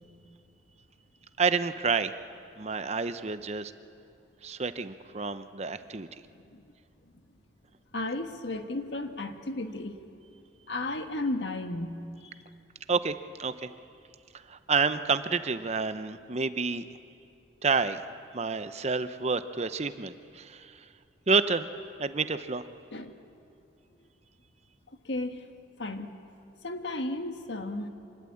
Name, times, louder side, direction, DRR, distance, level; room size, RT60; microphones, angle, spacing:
voice 1, 1.4-2.1 2.6-3.7 4.4-6.1 12.9-13.5 14.5-16.9 17.6-18.0 18.3-20.9 21.3-21.7 22.0-22.7, right 4 dB, 40° right, 11 dB, 0.8 m, -29 dB
voice 2, 7.9-10.0 10.7-12.3 22.9-23.1 25.0-25.4 25.8-26.1 26.6-27.9, left 2 dB, 80° left, 6 dB, 1.6 m, -34 dB
26.5 x 20.0 x 8.6 m, 2.5 s
head